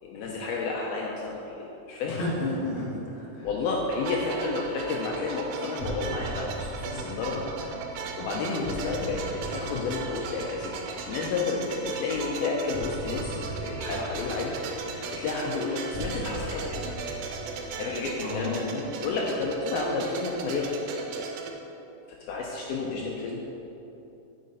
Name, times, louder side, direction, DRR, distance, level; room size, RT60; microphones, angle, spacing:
voice 1, 0.0-2.2 3.4-7.6 7.9-14.6 14.9-16.9 17.8-20.7 22.1-23.4, left 4 dB, 80° left, -2 dB, 2.3 m, -31 dB
voice 2, 2.0-3.5 18.2-18.6 22.8-23.1, left 2 dB, 25° left, -7 dB, 1.1 m, -32 dB
sound 1, 3.9-21.5, right 5 dB, 90° right, 2.9 m, -37 dB
sound 2, 5.8-11.5 12.7-19.0, equal, 35° right, 1.7 m, -40 dB
9.4 x 8.6 x 3.9 m, 2.9 s
omnidirectional pair, 4.9 m